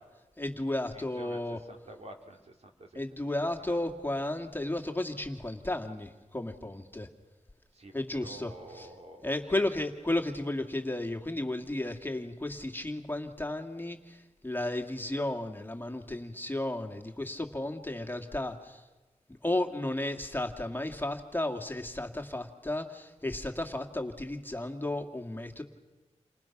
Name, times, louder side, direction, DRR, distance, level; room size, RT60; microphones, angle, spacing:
voice 1, 0.4-1.6 3.0-7.1 7.9-8.9 9.2-18.8 19.4-25.6, left 1 dB, 15° left, 3 dB, 2.2 m, -33 dB
voice 2, 0.9-3.8 7.7-9.7, right 1 dB, 65° right, 3 dB, 3.3 m, -49 dB
29.0 x 26.5 x 6.0 m, 1.2 s
wide cardioid pair, 90°, 12 cm